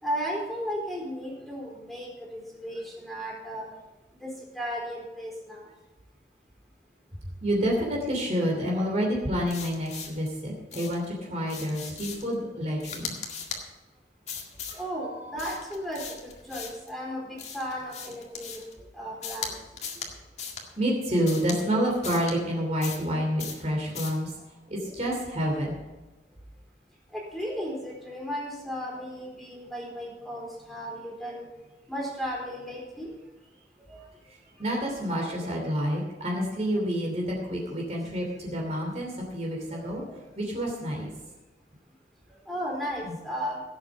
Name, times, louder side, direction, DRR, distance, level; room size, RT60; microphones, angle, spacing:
voice 1, 0.0-3.8 4.2-5.7 14.7-18.6 18.9-19.6 21.1-21.3 27.1-31.5 31.9-33.2 33.9-34.0 39.7-39.9 42.3-43.6, equal, ahead, -3 dB, 4.1 m, -35 dB
voice 2, 7.4-13.1 14.7-14.8 15.2-15.3 20.8-24.3 24.7-25.8 34.3-40.0 40.4-41.1 43.0-43.2, equal, 40° right, -1 dB, 2.9 m, -28 dB
sound 1, 9.5-10.3 10.7-11.1 11.5-12.3 12.8-13.6 14.3-14.8 15.4-16.9 17.4-18.7 19.2-19.5 19.8-20.1 20.4-20.6 21.2-21.6 22.0-22.3 22.8-23.1 23.4-23.6 23.9-24.2, left 6 dB, 40° left, 2.0 m, -38 dB
17.0 x 8.2 x 5.1 m, 1.1 s
head